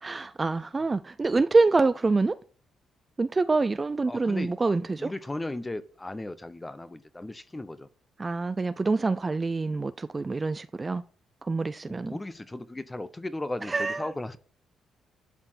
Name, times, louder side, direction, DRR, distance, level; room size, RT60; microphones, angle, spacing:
voice 1, 0.0-2.4 3.2-5.1 8.2-11.0 11.4-12.1 13.7-14.1, right 3 dB, 25° right, 0.4 m, -26 dB
voice 2, 4.1-4.5 5.0-7.9 11.9-14.4, left 2 dB, 15° left, 0.9 m, -36 dB
11.5 x 4.5 x 7.5 m
cardioid pair, 90°, 0 cm